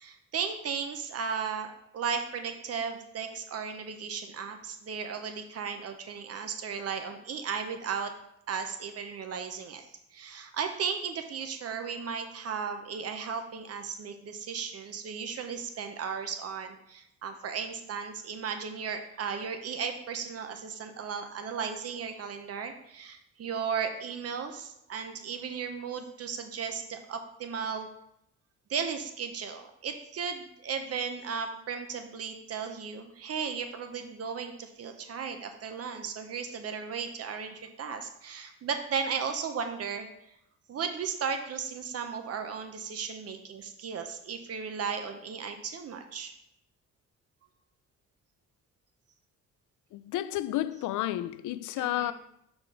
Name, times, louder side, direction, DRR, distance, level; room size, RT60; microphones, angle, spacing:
voice 1, 0.0-8.1 8.5-27.9 28.7-40.1 40.7-46.3 51.8-52.1, right 6 dB, 55° right, 1.0 m, -35 dB
voice 2, 49.9-52.1, left 14 dB, 80° left, 0.5 m, -31 dB
5.8 x 4.8 x 5.0 m
cardioid pair, 90°, 30 cm